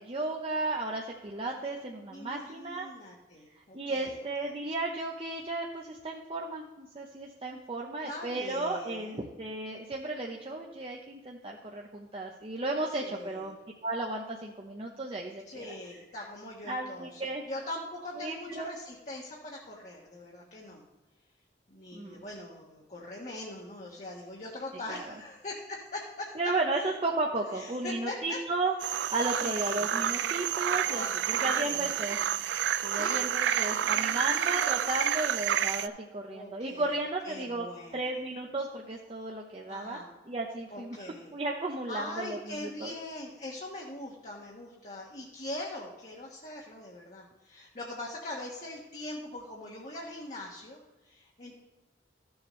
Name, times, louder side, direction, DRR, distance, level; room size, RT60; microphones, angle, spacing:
voice 1, 0.0-2.9 3.7-13.6 13.8-15.7 16.7-17.4 18.2-18.7 21.9-22.2 24.9-25.0 26.4-32.2 32.8-37.7 37.9-42.9, right 2 dB, 35° right, 0 dB, 0.8 m, -34 dB
voice 2, 2.1-4.5 8.0-9.3 12.9-13.5 15.4-20.8 21.7-26.9 27.4-28.4 29.4-29.9 30.8-32.2 32.9-34.7 36.3-37.0 37.2-38.2 39.7-40.1 40.7-41.3 41.9-51.6, left 1 dB, 40° left, -3 dB, 1.3 m, -42 dB
sound 1, 28.8-35.9, right 10 dB, 85° right, 0.4 m, -29 dB
14.0 x 7.1 x 3.1 m, 1.1 s
head